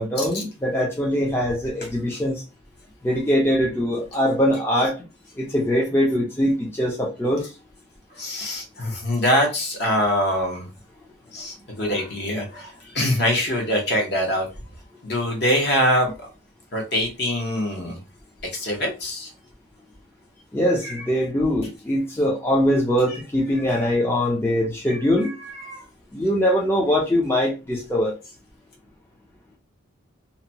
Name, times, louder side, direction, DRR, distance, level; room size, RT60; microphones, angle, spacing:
voice 1, 0.0-2.4 3.0-4.9 5.4-7.4 20.5-25.3 26.1-28.1, equal, 10° left, 0.4 m, -22 dB
voice 2, 8.1-10.7 11.3-14.5 15.0-16.3 16.7-18.0 18.5-19.3 20.8-21.0 23.1-23.2 24.9-25.0 25.5-25.8, equal, 50° left, 0.9 m, -24 dB
2.8 x 2.2 x 2.7 m
head